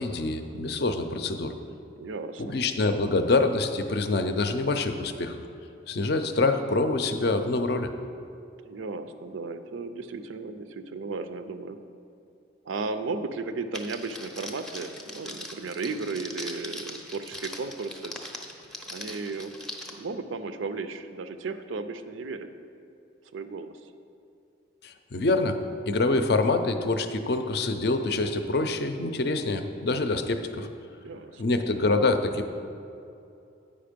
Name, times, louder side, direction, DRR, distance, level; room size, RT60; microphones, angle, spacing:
voice 1, 0.0-1.5 2.4-5.4 5.9-7.9 24.8-25.6 25.9-30.7 31.4-32.5, left 3 dB, 55° left, 7 dB, 0.5 m, -26 dB
voice 2, 2.0-2.6 8.6-11.8 12.7-18.1 18.9-19.5 20.0-22.5 23.3-23.9 31.0-31.4, right 4 dB, 85° right, 10 dB, 0.5 m, -35 dB
Crackle, 13.7-19.9, left 1 dB, ahead, 0.5 m, -40 dB
8.7 x 5.2 x 5.1 m, 2.7 s
head